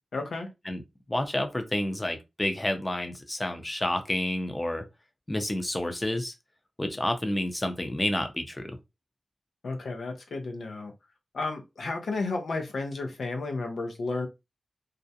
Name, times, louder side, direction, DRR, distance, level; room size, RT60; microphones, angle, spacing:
voice 1, 0.1-0.5 9.6-10.9 11.3-14.3, left 3 dB, 85° left, 0.6 m, -32 dB
voice 2, 1.1-4.9 5.3-6.3 6.8-8.8, left 1 dB, 25° left, 0.6 m, -29 dB
2.4 x 2.1 x 2.7 m
cardioid pair, 45°, 0 cm